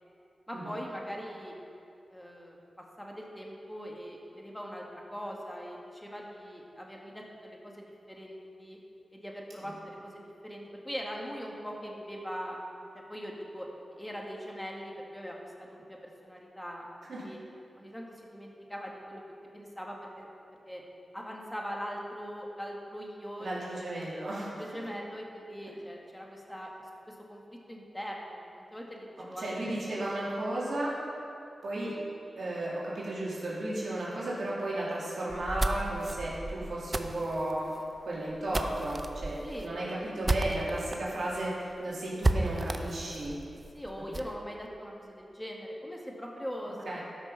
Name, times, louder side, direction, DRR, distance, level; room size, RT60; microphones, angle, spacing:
voice 1, 0.5-1.6 2.1-2.6 3.0-8.8 9.1-12.6 12.9-13.7 14.0-17.4 17.8-19.2 19.5-20.3 20.7-20.8 21.1-23.8 24.4-26.7 27.1-29.7 39.4-39.7 43.5-47.0, equal, 5° left, -1 dB, 1.9 m, -41 dB
voice 2, 23.4-24.8 29.2-31.0 31.6-31.9 32.4-37.7 38.0-43.4 46.6-47.0, right 1 dB, 70° right, -6 dB, 2.7 m, -34 dB
sound 1, 35.3-41.0 41.3-41.4 41.7-41.8 42.2-44.3, right 2 dB, 30° right, 0.6 m, -33 dB
12.5 x 6.1 x 5.5 m, 2.6 s
cardioid pair, 55°, 0 cm